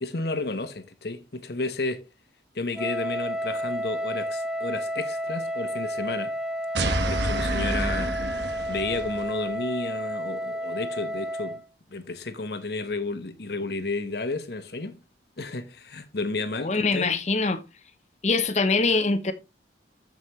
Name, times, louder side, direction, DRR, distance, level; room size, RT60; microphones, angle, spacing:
voice 1, 0.0-2.0 2.5-6.3 7.1-8.2 8.7-11.6 11.9-15.0 15.4-17.2, left 3 dB, 65° left, 1.1 m, -32 dB
Wind instrument woodwind instrument, 2.7-11.6, equal, 5° right, 0.3 m, -31 dB
sound 1, 6.7-9.3, right 1 dB, 85° right, 1.5 m, -28 dB
voice 2, 16.6-17.6 18.2-19.3, left 3 dB, 40° left, 0.8 m, -23 dB
14.0 x 5.2 x 3.1 m
head